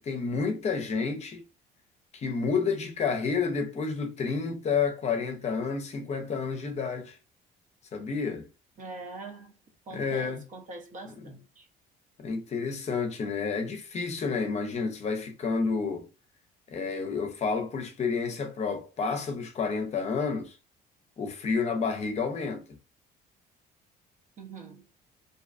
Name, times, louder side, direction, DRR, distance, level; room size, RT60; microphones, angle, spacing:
voice 1, 0.0-1.4 2.1-7.2 7.9-8.4 9.9-10.4 12.2-16.1 16.7-20.5 21.2-22.6, left 5 dB, 40° left, 0.6 m, -30 dB
voice 2, 8.8-9.6 9.9-11.7 24.4-24.9, right 3 dB, 50° right, 0.8 m, -43 dB
2.6 x 2.3 x 2.4 m
cardioid pair, 110°, 17 cm